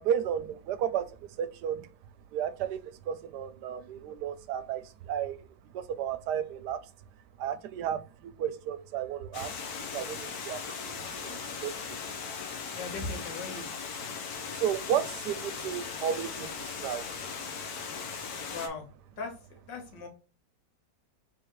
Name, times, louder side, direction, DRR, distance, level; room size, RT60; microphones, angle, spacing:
voice 1, 0.0-1.9 2.3-5.4 5.7-6.8 7.4-9.5 9.8-12.0 14.5-17.1, right 9 dB, 75° right, 1.2 m, -33 dB
Water, 9.3-18.7, left 6 dB, 60° left, 1.3 m, -38 dB
voice 2, 12.7-13.7 18.5-18.9 19.2-20.1, left 3 dB, 80° left, 1.9 m, -38 dB
4.8 x 3.6 x 3.0 m
omnidirectional pair, 1.9 m